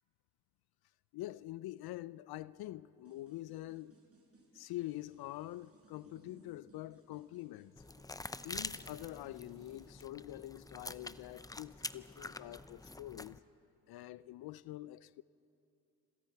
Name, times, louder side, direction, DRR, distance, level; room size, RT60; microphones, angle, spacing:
voice 1, 1.1-4.0 4.5-7.7 8.4-13.4 13.9-15.2, left 16 dB, 75° left, 0.5 m, -45 dB
sound 1, 3.0-9.9, right 4 dB, 35° right, 6.6 m, -65 dB
sound 2, 7.8-13.4, left 2 dB, 10° left, 0.6 m, -46 dB
27.5 x 26.5 x 4.6 m
supercardioid pair, 55°, 38 cm